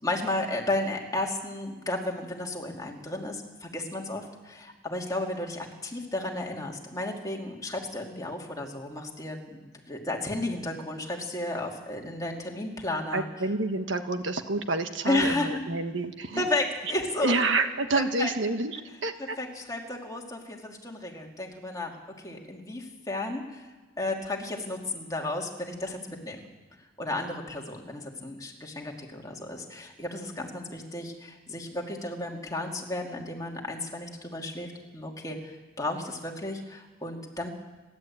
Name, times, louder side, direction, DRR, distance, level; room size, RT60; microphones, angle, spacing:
voice 1, 0.0-13.3 15.0-15.6 16.4-17.4 17.9-18.3 19.4-22.0 22.2-23.7 24.0-26.4 27.0-37.5, left 2 dB, 20° left, 0 dB, 2.7 m, -33 dB
voice 2, 13.1-16.4 17.2-19.4, right 3 dB, 65° right, 7 dB, 1.3 m, -28 dB
29.5 x 11.5 x 8.7 m, 1.2 s
head